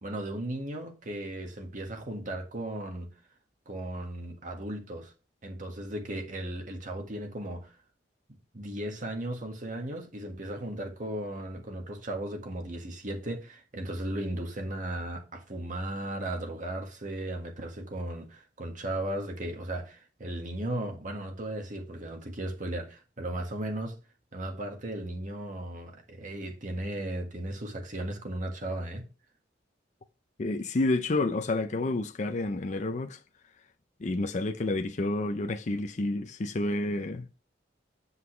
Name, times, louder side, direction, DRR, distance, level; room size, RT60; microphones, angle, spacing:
voice 1, 0.0-3.1 3.6-5.1 5.4-7.7 8.5-24.0 24.3-29.1, right 1 dB, 45° right, 1.6 m, -36 dB
voice 2, 30.4-33.2 34.0-37.3, left 2 dB, 40° left, 0.6 m, -29 dB
8.1 x 5.6 x 3.2 m
head